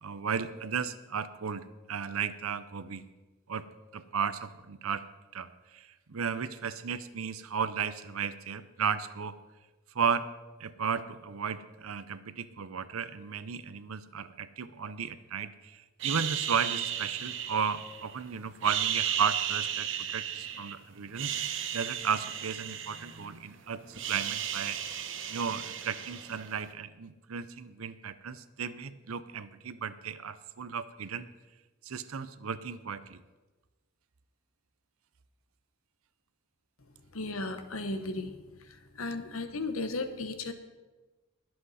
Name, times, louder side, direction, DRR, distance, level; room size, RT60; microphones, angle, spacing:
voice 1, 0.0-3.0 3.5-9.4 9.9-10.3 10.6-21.3 21.7-24.8 25.3-31.3 31.8-33.2, right 6 dB, 85° right, 14 dB, 0.7 m, -34 dB
sound 1, 16.0-18.2 18.6-20.7 21.1-23.5 23.7-26.6, right 9 dB, 60° right, 0.9 m, -34 dB
voice 2, 37.1-40.5, left 2 dB, 80° left, 9 dB, 1.1 m, -35 dB
21.0 x 7.9 x 4.2 m, 1.2 s
head